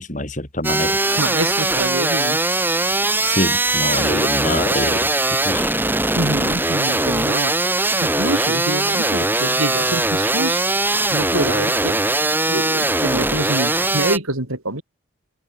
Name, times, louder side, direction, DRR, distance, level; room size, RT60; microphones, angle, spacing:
voice 1, 0.0-1.0 3.3-5.8, left 1 dB, 35° left, 4.2 m, -25 dB
sound 1, 0.6-14.2, right 2 dB, 10° right, 6.0 m, -20 dB
voice 2, 1.2-2.4 6.1-7.5 8.0-10.6 11.1-12.0 12.5-14.8, right 2 dB, 85° right, 6.3 m, -25 dB
open air
head